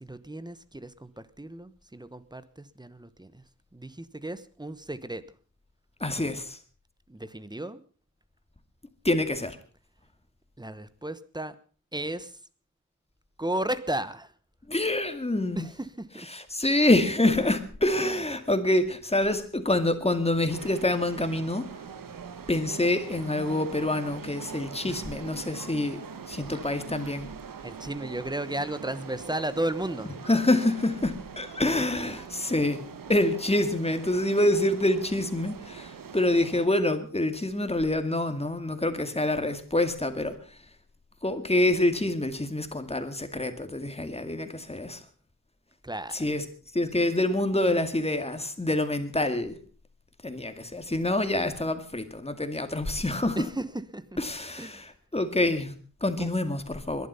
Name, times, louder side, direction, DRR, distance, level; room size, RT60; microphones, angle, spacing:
voice 1, 0.0-3.4 3.7-5.2 7.1-7.8 10.6-11.5 11.9-12.3 13.4-14.3 15.5-15.7 16.0-16.3 18.0-18.1 24.9-25.0 26.5-26.6 27.6-30.1 45.8-46.1 53.4-53.6 53.9-54.0 54.6-54.8 56.2-56.3, right 1 dB, 10° right, 14 dB, 1.1 m, -34 dB
voice 2, 6.0-6.6 9.0-9.6 14.7-15.7 16.3-21.7 22.5-26.0 26.3-27.3 30.3-32.8 33.1-40.4 41.2-45.0 46.1-46.5 46.7-49.6 50.2-53.5 54.2-57.1, left 1 dB, 20° left, 9 dB, 2.2 m, -26 dB
sound 1, 20.5-36.7, right 6 dB, 80° right, 1.3 m, -42 dB
21.5 x 11.5 x 5.6 m, 0.43 s
wide cardioid pair, 100°, 33 cm